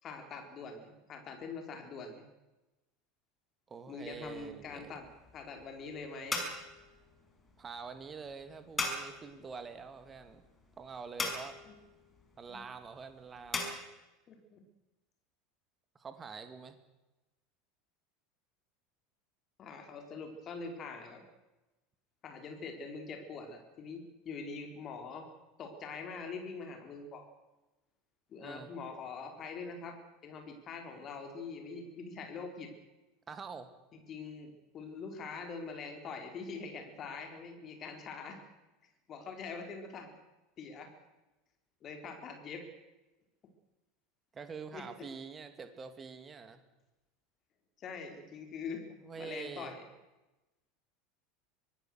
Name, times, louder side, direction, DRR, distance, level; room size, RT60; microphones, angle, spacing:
voice 1, 0.0-2.2 3.9-5.1 5.3-6.4 11.6-11.7 12.5-12.6 14.3-14.6 19.6-21.2 22.2-25.3 25.6-27.2 28.3-32.7 34.1-38.4 39.1-40.1 40.6-40.9 41.8-42.7 44.7-44.9 47.8-49.9, left 4 dB, 35° left, 4 dB, 4.3 m, -44 dB
voice 2, 3.7-5.0 7.6-10.4 10.8-11.6 12.4-13.8 15.9-16.8 28.4-28.7 33.3-33.7 44.3-46.6 49.0-49.8, right 5 dB, 25° right, 9 dB, 2.6 m, -46 dB
sound 1, 4.1-13.7, left 3 dB, 20° left, 5.6 m, -41 dB
24.5 x 19.5 x 6.5 m, 1.0 s
figure-of-eight pair, 75°, 0 cm